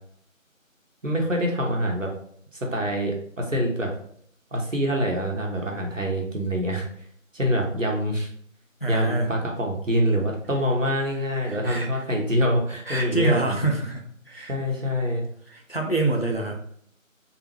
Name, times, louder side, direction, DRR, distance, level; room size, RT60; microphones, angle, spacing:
voice 1, 1.0-2.1 2.7-3.9 4.5-6.8 7.3-8.3 8.9-13.6 14.5-15.2, equal, 65° right, 0 dB, 1.1 m, -25 dB
voice 2, 8.8-9.3 11.4-12.0 12.9-14.6 15.5-16.6, right 2 dB, 45° left, 2 dB, 0.5 m, -27 dB
3.4 x 3.0 x 3.0 m, 0.64 s
figure-of-eight pair, 180°, 41 cm